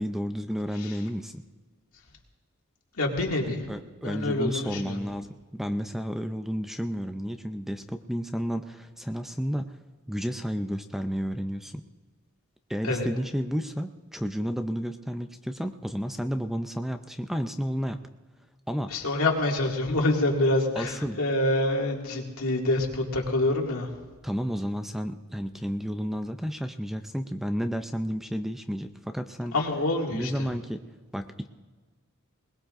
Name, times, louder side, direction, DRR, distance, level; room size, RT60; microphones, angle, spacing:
voice 1, 0.0-1.4 3.7-5.3 5.5-9.8 10.1-11.8 12.7-18.0 18.7-18.9 20.8-21.2 24.2-29.6 30.1-30.8 31.1-31.5, equal, ahead, 7 dB, 0.5 m, -31 dB
voice 2, 3.0-3.6 4.0-5.0 12.8-13.1 18.9-23.9 29.5-30.3, left 2 dB, 75° left, 0 dB, 2.3 m, -26 dB
21.5 x 20.0 x 2.6 m, 1.4 s
head